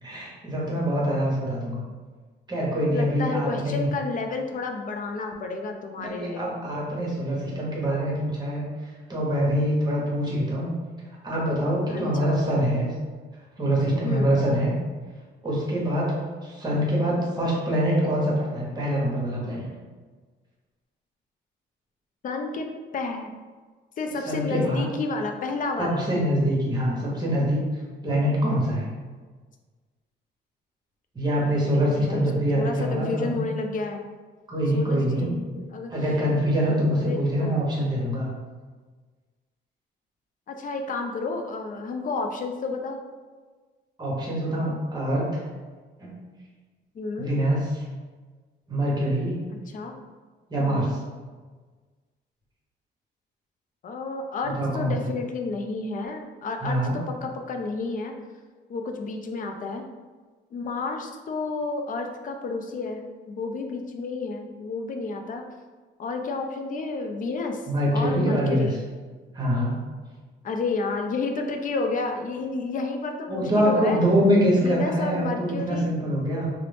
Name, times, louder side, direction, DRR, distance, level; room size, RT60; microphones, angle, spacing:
voice 1, 0.0-1.8 2.5-3.9 6.0-10.7 11.2-12.9 13.6-14.8 15.4-16.1 16.4-19.7 24.3-24.8 25.8-27.6 28.0-28.9 31.1-33.4 34.5-35.3 35.9-38.3 44.0-45.4 46.0-46.2 47.2-47.8 48.7-49.4 50.5-51.0 54.6-55.1 56.6-57.0 67.7-68.7 69.3-69.8 73.3-76.5, equal, 20° right, -5 dB, 1.0 m, -24 dB
voice 2, 2.9-6.5 11.9-12.3 14.0-14.4 22.2-22.7 22.9-23.3 24.0-26.0 31.9-32.3 32.5-34.0 34.7-35.9 36.6-37.6 40.5-43.0 47.0-47.3 49.7-49.9 50.7-50.9 53.8-58.1 58.7-59.9 60.5-63.0 63.3-65.4 66.0-67.6 67.9-68.8 70.4-74.0 74.5-75.9, left 3 dB, 45° left, 4 dB, 0.4 m, -31 dB
2.4 x 2.0 x 3.2 m, 1.4 s
cardioid pair, 90°, 20 cm